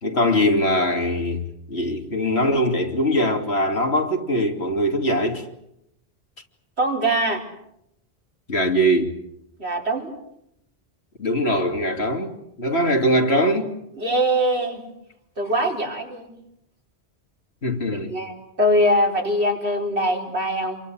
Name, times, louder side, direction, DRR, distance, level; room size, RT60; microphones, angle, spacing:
voice 1, 0.0-5.5 8.5-9.2 11.2-13.7 17.6-18.2, equal, 80° left, 3.3 m, -22 dB
voice 2, 6.8-7.4 9.6-10.1 14.0-14.9 15.4-16.3 17.9-20.8, equal, 85° right, 5.1 m, -22 dB
28.5 x 23.5 x 7.9 m
omnidirectional pair, 1.1 m